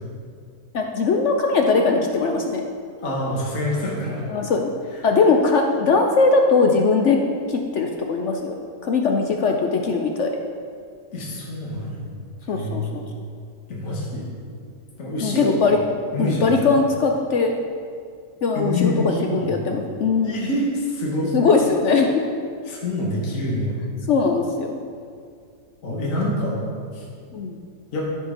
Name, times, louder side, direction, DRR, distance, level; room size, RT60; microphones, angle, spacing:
voice 1, 0.7-2.6 4.3-4.7 5.0-7.2 7.5-8.5 8.8-10.3 12.5-13.0 15.2-15.8 16.2-17.5 18.4-20.5 21.3-22.3 24.1-24.8 27.3-27.6, left 4 dB, 70° left, 3 dB, 0.7 m, -20 dB
voice 2, 3.0-4.2 4.9-5.0 11.1-12.0 12.5-12.9 13.7-14.2 15.0-15.8 16.1-16.6 18.5-19.5 20.2-21.3 22.7-23.8 25.8-26.6 26.9-27.0 27.9-28.1, left 1 dB, 50° left, -4 dB, 1.8 m, -26 dB
14.0 x 5.3 x 3.9 m, 2.2 s
omnidirectional pair, 1.9 m